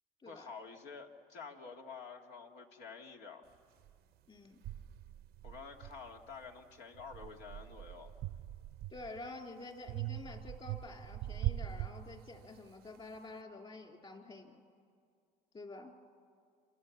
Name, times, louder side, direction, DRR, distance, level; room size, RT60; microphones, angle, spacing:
voice 1, 0.3-3.4 5.4-8.1, left 5 dB, 80° left, 2 dB, 2.3 m, -49 dB
sound 1, 3.8-3.9 4.6-6.5 6.9-9.3 9.9-12.6, right 13 dB, 70° right, 0.7 m, -42 dB
voice 2, 4.3-4.6 8.9-14.6 15.5-15.9, left 2 dB, 35° left, 2 dB, 3.4 m, -49 dB
27.5 x 27.0 x 7.3 m, 2.2 s
cardioid pair, 110°, 17 cm